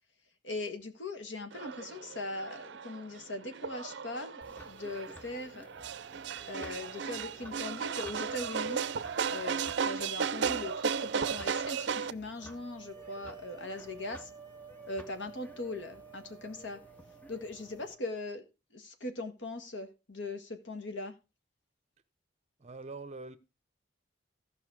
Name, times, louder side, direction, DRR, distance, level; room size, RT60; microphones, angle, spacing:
voice 1, 0.4-5.7 6.5-8.8 9.3-14.3 14.9-16.8 17.3-18.4 18.7-21.1, left 2 dB, 80° left, 1.6 m, -40 dB
sound 1, 1.5-12.1, right 6 dB, 65° right, 0.5 m, -35 dB
sound 2, 4.4-17.9, left 1 dB, 10° left, 0.7 m, -54 dB
sound 3, 12.4-18.2, right 6 dB, 20° right, 1.1 m, -52 dB
voice 2, 22.6-23.4, right 3 dB, 35° right, 0.8 m, -43 dB
15.0 x 5.6 x 4.7 m
head